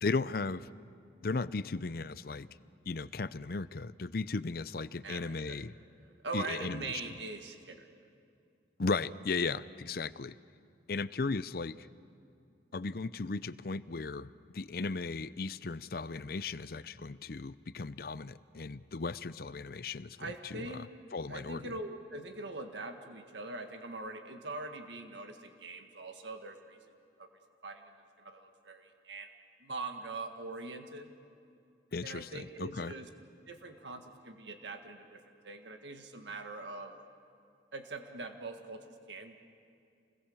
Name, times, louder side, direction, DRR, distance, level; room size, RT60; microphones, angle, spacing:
voice 1, 0.0-0.7 1.2-2.5 2.9-5.7 6.3-6.8 8.8-10.3 10.9-11.9 12.7-20.7 21.1-21.6 31.9-32.9, left 4 dB, 55° left, 16 dB, 0.6 m, -36 dB
voice 2, 5.0-5.6 6.0-7.9 20.2-20.9 21.3-26.8 27.2-27.3 27.6-29.3 29.6-31.1 32.0-33.1 33.5-37.0 37.7-39.5, right 3 dB, 85° right, 6 dB, 1.7 m, -43 dB
28.0 x 21.5 x 7.2 m, 2.5 s
head